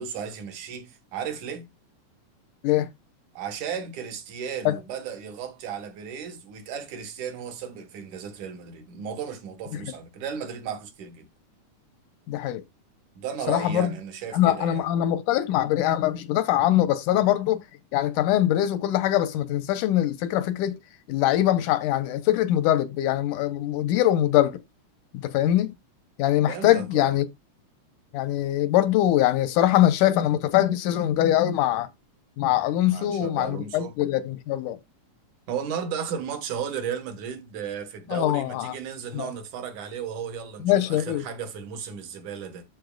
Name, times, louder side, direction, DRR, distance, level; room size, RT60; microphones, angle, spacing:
voice 1, 0.0-1.7 3.3-11.3 13.2-14.9 26.5-27.1 32.9-34.0 35.5-42.6, right 7 dB, 75° right, 2.8 m, -35 dB
voice 2, 12.3-12.6 13.5-13.9 14.3-17.6 17.9-20.8 21.1-24.6 25.1-25.7 26.2-27.3 28.1-31.9 32.4-34.8 38.1-38.7 39.1-39.3 40.6-41.2, left 13 dB, 90° left, 2.3 m, -23 dB
13.0 x 4.3 x 2.4 m
omnidirectional pair, 3.6 m